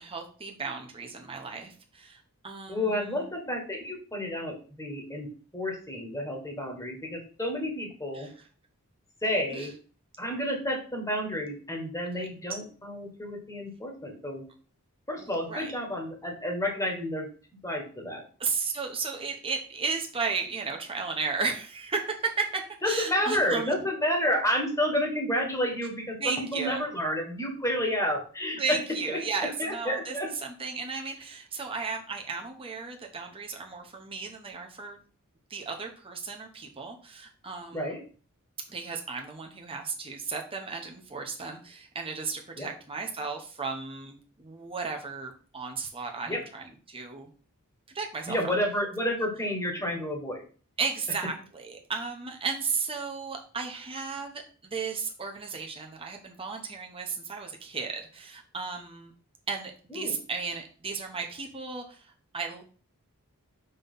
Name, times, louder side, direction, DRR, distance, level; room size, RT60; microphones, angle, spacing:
voice 1, 0.0-3.3 8.1-8.5 9.5-9.7 12.1-12.3 15.2-15.7 18.4-23.7 26.2-26.9 28.6-30.1 30.4-35.0 35.5-38.0 38.7-47.3 47.9-48.4 50.8-59.1 59.5-62.6, right 4 dB, 25° right, 2 dB, 1.0 m, -34 dB
voice 2, 2.7-5.3 5.5-8.3 9.2-9.7 10.2-14.4 15.1-17.3 17.6-18.2 22.8-28.8 29.1-29.2 29.6-30.3 37.7-38.0 42.6-42.7 46.3-46.4 48.3-50.4 59.9-60.1, equal, 15° left, 0 dB, 1.5 m, -30 dB
5.5 x 3.2 x 5.5 m, 0.40 s
head